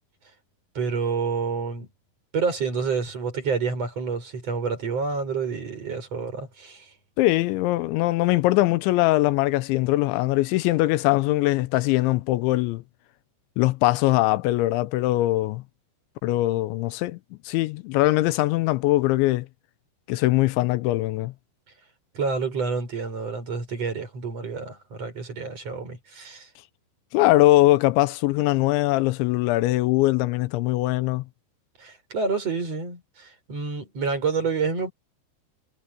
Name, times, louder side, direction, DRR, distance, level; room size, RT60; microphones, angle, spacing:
voice 1, 0.8-1.9 2.3-6.9 22.1-26.5 31.8-34.9, right 5 dB, 35° right, 7.1 m, -28 dB
voice 2, 7.2-12.8 13.6-15.6 16.2-17.2 17.5-19.5 20.1-21.3 27.1-31.2, left 18 dB, 80° left, 2.9 m, -21 dB
omnidirectional pair, 5.4 m